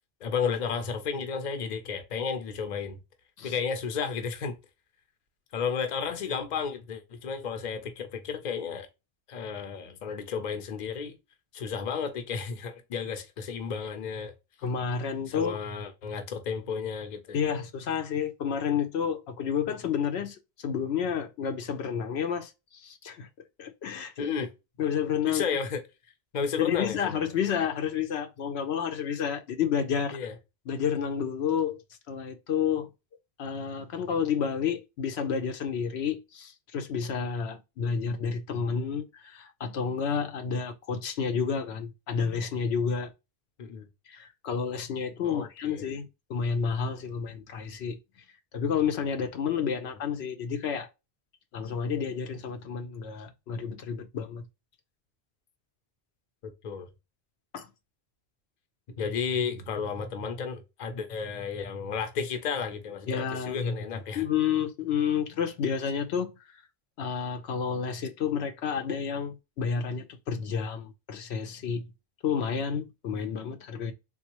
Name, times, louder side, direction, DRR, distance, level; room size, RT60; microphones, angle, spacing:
voice 1, 0.2-3.0 3.4-4.5 5.5-8.9 9.3-11.2 11.5-14.3 15.3-17.4 24.2-24.5 25.3-25.8 26.3-27.2 30.1-30.3 43.6-43.9 45.2-45.8 56.6-56.9 59.0-64.2, left 6 dB, 50° left, 0.7 m, -32 dB
voice 2, 14.6-15.6 17.3-23.3 23.6-24.3 24.8-25.4 26.6-30.2 30.7-31.8 32.1-32.9 33.4-43.1 44.1-48.0 48.5-50.9 51.5-54.4 57.5-57.7 63.1-63.8 64.2-66.3 67.0-71.9 72.2-73.9, left 7 dB, 85° left, 0.9 m, -30 dB
3.5 x 2.4 x 2.9 m
omnidirectional pair, 1.1 m